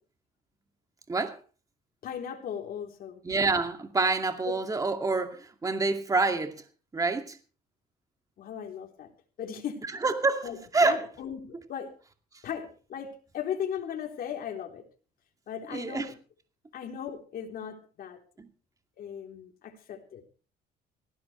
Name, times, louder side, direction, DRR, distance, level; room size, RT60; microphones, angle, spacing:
voice 1, 2.0-3.2 4.5-4.6 8.4-9.1 9.4-9.8 10.4-11.9 12.4-14.8 15.5-16.2 16.7-18.2 19.0-20.2, left 8 dB, 60° left, 3.6 m, -37 dB
voice 2, 3.2-6.6 6.9-7.4 10.0-10.5 10.7-11.1 15.7-16.1 18.4-18.5, right 3 dB, 20° right, 2.3 m, -27 dB
19.0 x 16.5 x 3.3 m
cardioid pair, 110°, 17 cm